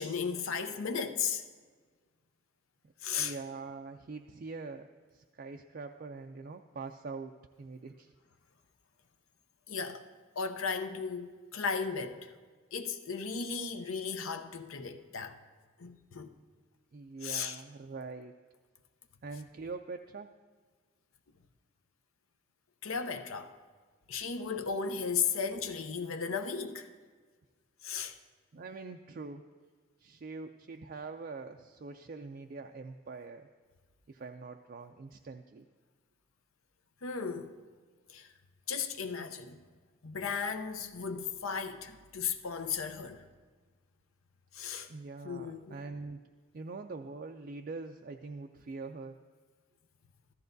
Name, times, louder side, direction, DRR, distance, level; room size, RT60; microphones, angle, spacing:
voice 1, 0.0-1.4 3.0-3.3 9.7-10.0 10.4-12.3 12.7-15.4 15.8-16.3 17.2-17.6 22.8-23.6 24.1-26.9 27.8-28.1 37.0-37.6 38.1-38.3 38.7-39.6 40.0-43.2 44.5-44.9 45.2-45.8, left 6 dB, 80° left, 0.7 m, -35 dB
voice 2, 3.2-8.1 16.9-18.3 19.2-20.3 28.5-29.4 30.0-33.5 34.1-35.6 44.9-46.2 46.5-49.2, right 4 dB, 45° right, 0.3 m, -44 dB
14.5 x 13.0 x 2.6 m
head